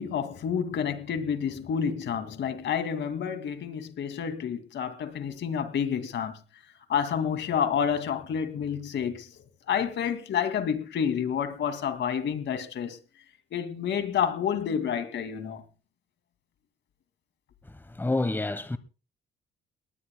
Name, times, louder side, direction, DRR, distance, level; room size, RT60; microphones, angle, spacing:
voice 1, 0.0-6.4 6.9-13.0 13.5-15.6, left 7 dB, 65° left, 2.4 m, -29 dB
voice 2, 17.6-18.8, left 2 dB, 10° left, 1.2 m, -29 dB
20.0 x 19.5 x 2.3 m
cardioid pair, 90°, 20 cm